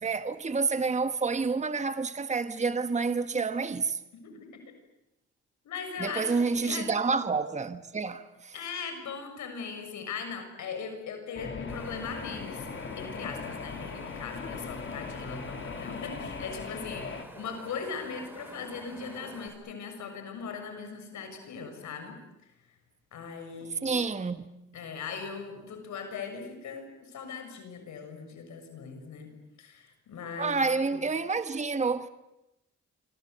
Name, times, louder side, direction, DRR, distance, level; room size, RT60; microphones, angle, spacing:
voice 1, 0.0-4.0 6.0-8.5 23.8-24.5 30.4-32.1, right 4 dB, 25° right, 1.3 m, -29 dB
voice 2, 4.2-4.6 5.6-6.8 8.5-12.7 13.0-22.2 23.1-23.9 24.7-29.3 29.6-31.0, left 5 dB, 70° left, 6.8 m, -39 dB
sound 1, 11.3-17.2, left 5 dB, 40° left, 2.9 m, -39 dB
Wind, 11.7-19.5, right 1 dB, 5° right, 7.5 m, -47 dB
26.5 x 25.5 x 8.0 m
cardioid pair, 90°, 30 cm